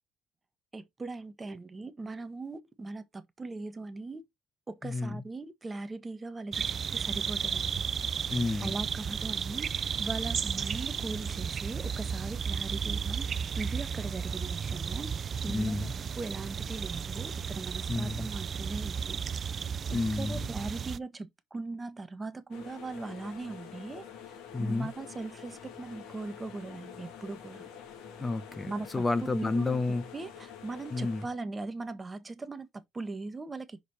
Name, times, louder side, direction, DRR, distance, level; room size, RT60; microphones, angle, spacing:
voice 1, 0.7-4.2 4.7-7.9 8.6-15.9 16.2-19.2 19.9-24.0 24.6-27.7 28.7-28.9 29.2-29.8 30.1-33.8, right 3 dB, 25° right, 1.4 m, -39 dB
voice 2, 4.8-5.2 8.3-8.8 15.5-15.9 17.9-18.3 19.9-20.5 24.5-24.9 28.2-30.0 30.9-31.3, left 3 dB, 25° left, 1.2 m, -30 dB
sound 1, 6.5-21.0, right 7 dB, 45° right, 0.6 m, -34 dB
sound 2, 22.5-31.3, left 7 dB, 75° left, 2.8 m, -47 dB
6.6 x 5.0 x 4.3 m
supercardioid pair, 85°, 0 cm